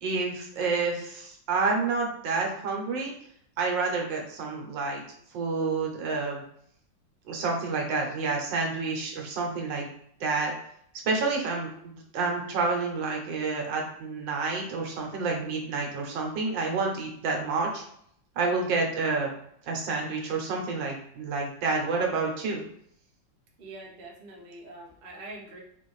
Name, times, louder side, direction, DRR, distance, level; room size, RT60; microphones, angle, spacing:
voice 1, 0.0-3.1 3.6-5.0 5.3-6.4 7.3-9.9 10.2-10.5 11.0-17.8 18.4-19.3 19.7-22.6, right 4 dB, 75° right, 0 dB, 1.5 m, -29 dB
voice 2, 11.3-11.6 18.5-18.7 23.6-25.6, right 2 dB, 55° right, -2 dB, 0.6 m, -45 dB
4.1 x 2.5 x 3.1 m, 0.68 s
omnidirectional pair, 2.1 m